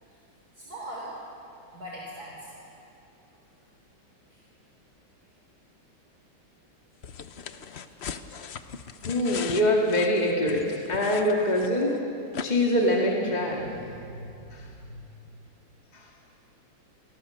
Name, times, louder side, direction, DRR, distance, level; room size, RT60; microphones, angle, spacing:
voice 1, 0.5-1.2 1.7-2.6 4.3-4.4 7.9-8.0 13.3-15.1, right 1 dB, 45° right, -3 dB, 3.8 m, -42 dB
sound 1, 7.0-12.0 12.3-12.5, left 7 dB, 75° left, 0.6 m, -39 dB
voice 2, 9.1-12.0 12.4-13.6 14.5-14.7 15.9-16.1, left 1 dB, 20° left, -2 dB, 2.2 m, -24 dB
28.5 x 21.0 x 6.5 m, 2.8 s
omnidirectional pair, 2.3 m